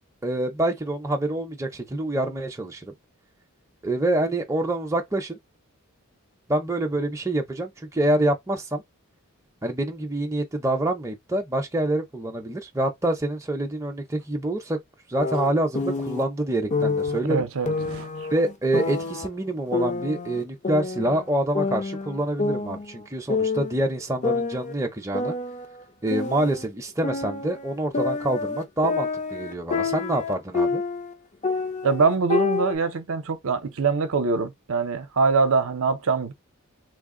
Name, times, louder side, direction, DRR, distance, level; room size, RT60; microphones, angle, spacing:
voice 1, 0.2-2.9 3.8-5.4 6.5-8.8 9.6-14.8 15.1-17.5 18.3-25.3 26.0-30.8, right 1 dB, 15° right, 0.6 m, -26 dB
sound 1, 15.2-16.2 16.7-17.2 17.7-19.3 19.7-21.3 21.5-23.0 23.3-23.8 24.2-26.7 27.0-31.1 31.4-32.8, left 4 dB, 35° left, 0.6 m, -28 dB
voice 2, 17.3-18.3 31.8-36.3, right 4 dB, 65° right, 0.6 m, -23 dB
3.3 x 2.1 x 3.7 m
head